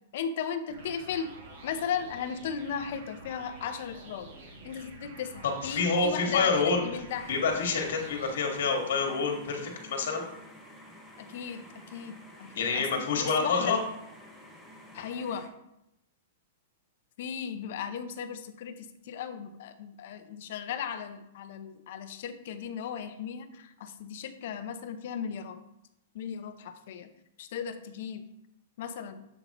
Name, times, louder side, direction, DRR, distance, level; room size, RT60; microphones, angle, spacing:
voice 1, 0.1-1.3 1.6-4.3 4.6-7.3 11.2-12.9 13.1-13.8 14.9-15.5 17.2-25.6 26.1-27.1 27.4-28.3 28.8-29.3, left 7 dB, 55° left, 9 dB, 0.6 m, -36 dB
sound 1, 0.7-8.3, right 3 dB, 50° right, 1.4 m, -48 dB
voice 2, 5.4-6.8 7.3-10.2 12.5-13.8, left 4 dB, 70° left, 2 dB, 1.5 m, -27 dB
sound 2, 7.1-15.5, left 1 dB, ahead, 0.7 m, -50 dB
7.1 x 5.5 x 3.0 m, 0.85 s
supercardioid pair, 165°, 0 cm